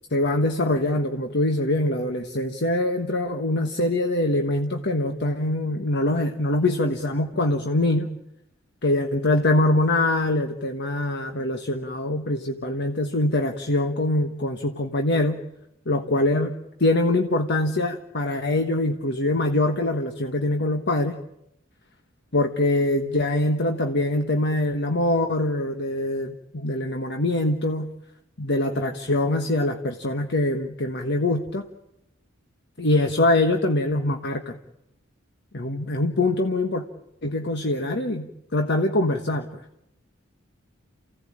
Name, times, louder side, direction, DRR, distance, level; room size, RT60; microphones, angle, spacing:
voice 1, 0.1-8.1 8.8-15.4 15.8-16.5 16.8-21.2 22.3-27.9 28.4-31.6 32.8-34.6 35.5-36.8 37.2-39.6, left 1 dB, 60° left, 5 dB, 1.4 m, -23 dB
29.0 x 16.5 x 8.8 m, 0.81 s
head